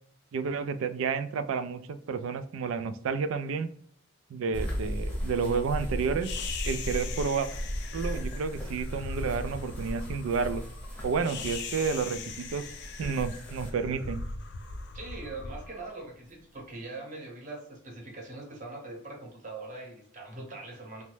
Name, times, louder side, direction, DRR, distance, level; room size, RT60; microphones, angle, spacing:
voice 1, 0.3-3.7 4.3-6.3 6.6-7.5 7.9-10.6 11.0-12.6 13.0-14.2, right 5 dB, 90° right, 11 dB, 0.3 m, -30 dB
sound 1, 4.5-13.7, equal, 10° left, 0.6 m, -36 dB
sound 2, 6.2-16.6, left 4 dB, 60° left, 0.4 m, -40 dB
voice 2, 14.9-21.0, right 2 dB, 40° right, 0 dB, 0.8 m, -42 dB
3.1 x 2.1 x 3.1 m, 0.63 s
head